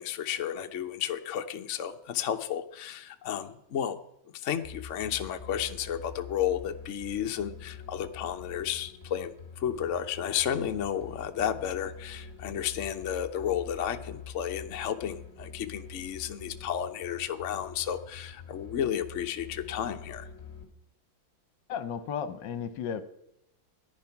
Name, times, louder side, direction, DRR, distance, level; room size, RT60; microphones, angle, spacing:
voice 1, 0.0-4.0 4.3-20.3, left 9 dB, 55° left, 7 dB, 0.9 m, -32 dB
sound 1, 4.6-20.6, left 5 dB, 15° left, 3.6 m, -46 dB
voice 2, 21.7-23.0, left 7 dB, 70° left, 13 dB, 1.5 m, -34 dB
14.5 x 10.5 x 5.9 m, 0.83 s
omnidirectional pair, 2.1 m